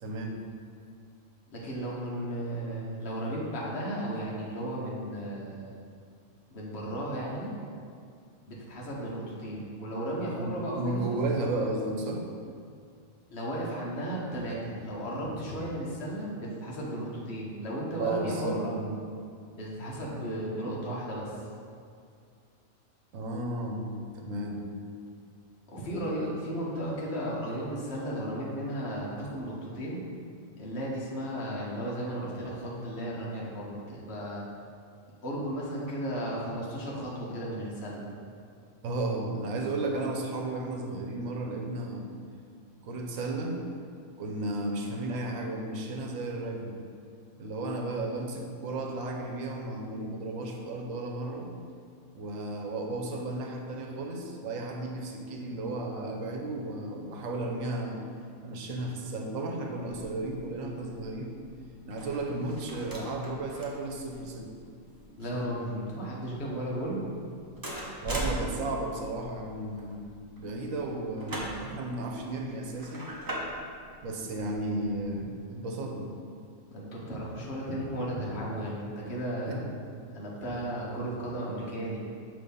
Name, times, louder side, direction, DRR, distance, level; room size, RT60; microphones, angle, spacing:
voice 1, 0.0-0.4 10.3-12.3 18.0-18.9 23.1-24.7 38.8-42.1 42.8-43.6 44.2-46.8 47.4-51.5 52.1-58.0 58.4-61.4 61.9-64.5 65.3-65.4 68.0-70.0 70.4-73.1 74.0-76.1 79.5-79.8, right 2 dB, 85° right, 2 dB, 1.1 m, -34 dB
voice 2, 1.5-5.8 6.5-7.5 8.4-11.2 13.3-18.7 19.5-21.4 25.7-30.0 30.6-34.4 35.2-38.1 65.2-67.1 76.7-79.6 80.1-82.0, right 1 dB, 55° left, -5 dB, 1.4 m, -34 dB
sound 1, 59.8-75.3, right 1 dB, 20° right, 0.6 m, -42 dB
6.5 x 3.2 x 5.3 m, 2.3 s
omnidirectional pair, 1.4 m